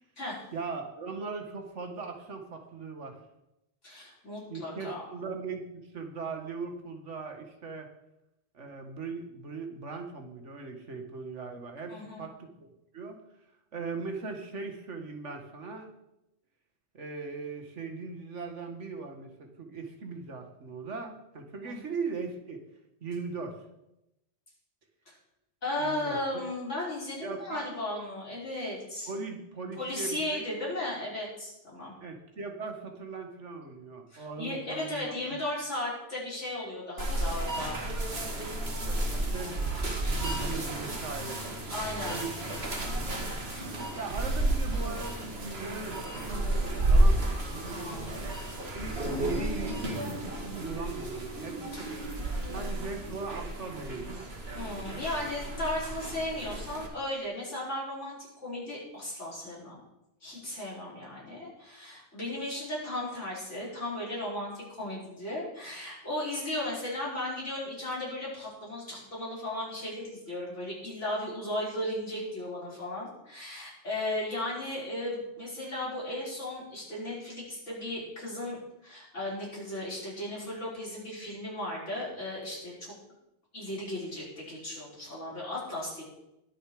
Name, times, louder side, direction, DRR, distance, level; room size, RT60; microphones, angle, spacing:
voice 1, 0.5-3.2 4.5-5.6 5.9-7.9 8.5-12.7 12.9-13.2 13.7-15.9 16.9-22.6 23.0-23.6 25.8-26.2 27.2-27.7 29.1-30.4 32.0-35.4 38.9-39.5 40.2-41.4 42.1-42.6 43.9-46.5 46.9-47.4 48.7-51.9 52.5-54.2, right 4 dB, 85° right, 4 dB, 2.0 m, -39 dB
voice 2, 3.8-5.0 11.9-12.2 21.6-21.8 25.1-25.2 25.6-29.1 29.8-31.9 34.1-37.8 41.7-42.2 47.7-48.2 51.8-52.0 54.5-58.2 58.4-59.8 60.2-82.9 83.5-86.0, left 1 dB, 85° left, -6 dB, 5.8 m, -36 dB
sound 1, 37.0-56.9, right 1 dB, 60° right, 2.2 m, -31 dB
20.5 x 6.9 x 5.0 m, 0.88 s
omnidirectional pair, 1.2 m